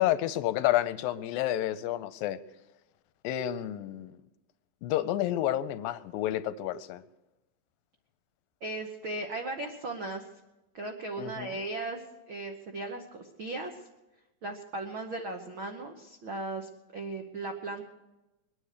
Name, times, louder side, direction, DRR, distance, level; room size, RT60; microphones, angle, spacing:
voice 1, 0.0-2.4 3.2-4.2 4.8-7.0 11.2-11.5, left 13 dB, 80° left, 13 dB, 2.3 m, -30 dB
voice 2, 8.6-10.2 10.7-13.8 14.4-17.8, right 2 dB, 85° right, 3 dB, 1.1 m, -37 dB
22.5 x 9.6 x 6.6 m, 0.99 s
omnidirectional pair, 4.2 m